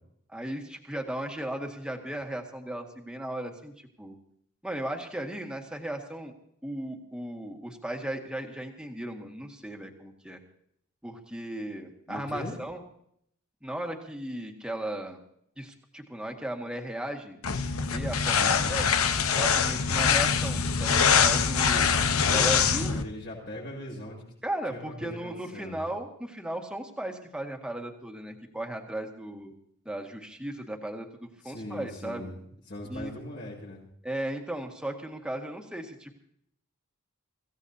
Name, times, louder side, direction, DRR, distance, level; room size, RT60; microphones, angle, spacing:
voice 1, 0.3-3.7 4.0-4.2 4.6-6.3 6.6-10.4 11.0-12.8 13.6-15.2 15.6-17.4 17.9-18.9 19.4-21.9 22.3-23.0 24.4-29.5 29.9-32.3 32.9-33.1 34.0-36.1, right 1 dB, 5° right, 2 dB, 1.9 m, -36 dB
voice 2, 12.1-12.6 18.4-18.8 22.5-22.6 22.9-24.2 24.7-25.9 31.4-33.8, left 1 dB, 55° left, -8 dB, 7.2 m, -40 dB
sound 1, 17.4-23.0, left 6 dB, 80° left, 1.0 m, -24 dB
25.5 x 16.0 x 2.8 m, 0.69 s
head